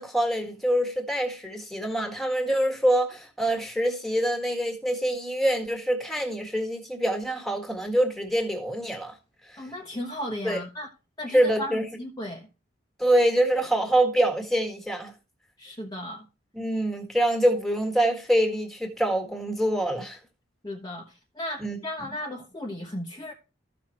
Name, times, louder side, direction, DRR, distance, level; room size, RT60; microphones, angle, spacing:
voice 1, 0.0-9.1 9.5-9.6 10.4-10.6 11.3-11.8 13.0-15.1 16.5-20.2 21.6-21.8, right 1 dB, ahead, 1.7 m, -25 dB
voice 2, 9.6-10.9 11.2-12.5 15.6-16.2 20.6-23.3, left 1 dB, 20° left, 1.2 m, -35 dB
14.0 x 5.9 x 3.1 m
head